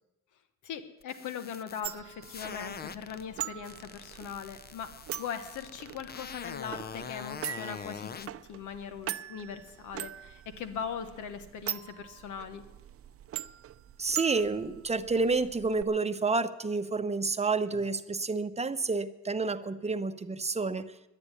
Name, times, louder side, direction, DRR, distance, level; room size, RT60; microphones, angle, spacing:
voice 1, 0.6-4.9 5.2-12.6, left 7 dB, 85° left, 9 dB, 1.4 m, -40 dB
sound 1, 1.0-3.2 3.6-8.3, left 6 dB, 30° left, 0.6 m, -43 dB
sound 2, 1.8-15.8, right 11 dB, 50° right, 0.6 m, -42 dB
voice 2, 14.0-20.9, right 4 dB, 20° right, 10 dB, 0.8 m, -29 dB
11.5 x 9.6 x 9.7 m, 0.94 s
cardioid pair, 90°, 30 cm